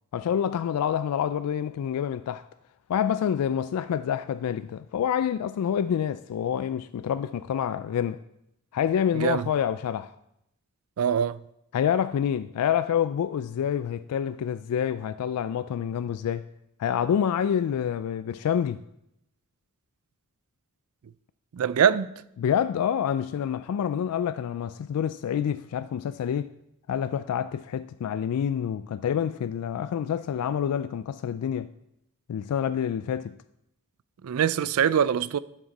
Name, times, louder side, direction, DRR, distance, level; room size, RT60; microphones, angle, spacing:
voice 1, 0.1-2.4 2.9-8.2 8.7-10.1 11.7-16.4 16.8-18.8 22.4-26.5 26.9-31.7 32.3-33.4, left 8 dB, 85° left, 0.3 m, -27 dB
voice 2, 9.1-9.5 11.0-11.4 21.5-22.1 34.2-35.4, right 8 dB, 70° right, 0.4 m, -23 dB
11.0 x 6.0 x 4.1 m
head